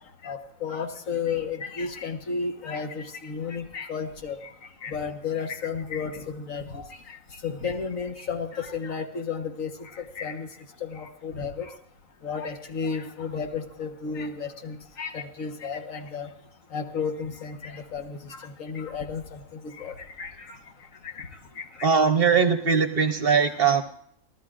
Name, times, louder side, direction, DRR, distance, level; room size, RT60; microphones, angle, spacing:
voice 1, 0.2-4.4 4.8-6.8 7.4-9.7 10.2-10.5 10.8-11.7 12.2-16.3 16.7-18.2 18.6-19.2 19.8-20.3, left 5 dB, 70° left, 6 dB, 1.6 m, -32 dB
voice 2, 21.8-23.8, right 6 dB, 50° right, 9 dB, 0.9 m, -21 dB
29.0 x 12.5 x 2.5 m, 0.68 s
omnidirectional pair, 1.5 m